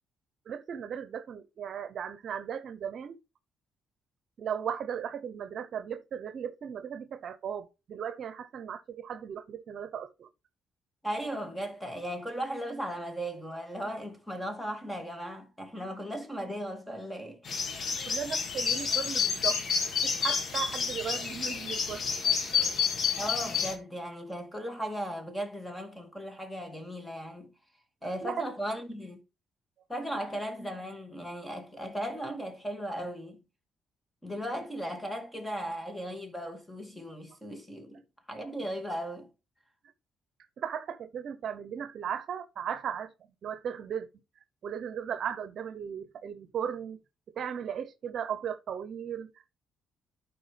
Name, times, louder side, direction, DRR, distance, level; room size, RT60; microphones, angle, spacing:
voice 1, 0.5-3.2 4.4-10.3 17.9-19.6 20.0-22.0 22.5-22.7 28.2-28.4 40.6-43.1 43.4-44.1 44.6-47.0 47.3-49.3, right 8 dB, 60° right, 0.8 m, -36 dB
voice 2, 11.0-17.4 23.2-27.5 28.0-29.2 29.9-33.4 34.2-38.0 38.3-39.3, equal, 10° left, 2.1 m, -37 dB
sound 1, 17.5-23.7, left 6 dB, 55° left, 1.5 m, -29 dB
11.5 x 4.5 x 3.3 m
cardioid pair, 90°, 0 cm